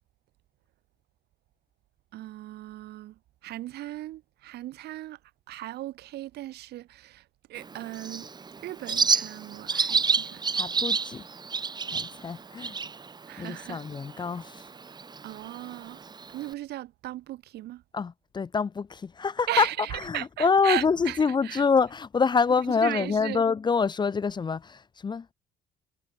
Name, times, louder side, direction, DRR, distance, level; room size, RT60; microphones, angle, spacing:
voice 1, 2.1-5.2 5.5-8.3 8.6-10.7 13.3-13.8 15.2-17.8 19.5-21.6 22.8-23.4, right 15 dB, 75° right, 4.3 m, -37 dB
Bird, 7.6-16.5, right 5 dB, 25° right, 1.6 m, -31 dB
voice 2, 10.6-11.3 11.9-12.8 13.4-14.7 17.9-25.3, left 5 dB, 25° left, 0.8 m, -26 dB
cardioid pair, 110°, 17 cm